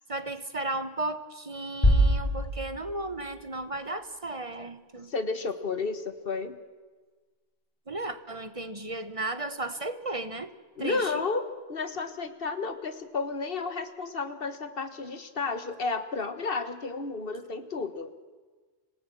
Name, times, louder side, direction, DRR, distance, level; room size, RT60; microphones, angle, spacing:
voice 1, 0.1-5.1 7.9-10.5 10.8-11.2, right 2 dB, 30° right, 11 dB, 1.1 m, -34 dB
sound 1, 1.8-3.6, equal, 35° left, 4.9 m, -25 dB
voice 2, 5.1-6.6 10.8-18.1, left 4 dB, 55° left, 10 dB, 1.7 m, -32 dB
26.0 x 17.5 x 7.6 m, 1.4 s
omnidirectional pair, 1.2 m